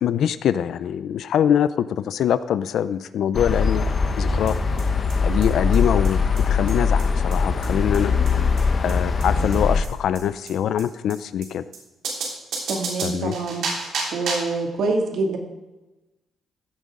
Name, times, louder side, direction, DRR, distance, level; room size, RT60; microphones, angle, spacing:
voice 1, 0.0-3.9 4.2-4.6 5.2-6.2 6.5-8.1 8.8-11.6 13.0-13.4, left 9 dB, 65° left, 14 dB, 0.4 m, -23 dB
sound 1, 3.3-9.8, left 5 dB, 35° left, 0.9 m, -21 dB
sound 2, 4.5-4.6 4.8-4.9 5.1-5.2 5.4-5.5 5.7-5.8 6.0-6.1 6.4-6.5 6.7-6.8 7.0-7.1 7.3-7.4 7.6-7.7 7.9-8.0 8.3-8.4 8.6-8.7 8.9-9.0 9.2-9.3 9.5-9.6 9.8-9.9 10.1-10.2 10.5-10.6 10.8-10.9 11.1-11.2 11.4-11.5 11.7-11.8 12.0-14.6, right 4 dB, 90° right, 3.5 m, -30 dB
voice 2, 12.7-13.6 14.1-15.4, right 3 dB, 70° right, 1 dB, 2.3 m, -25 dB
15.5 x 9.3 x 3.7 m, 1.1 s
wide cardioid pair, 170°, 0 cm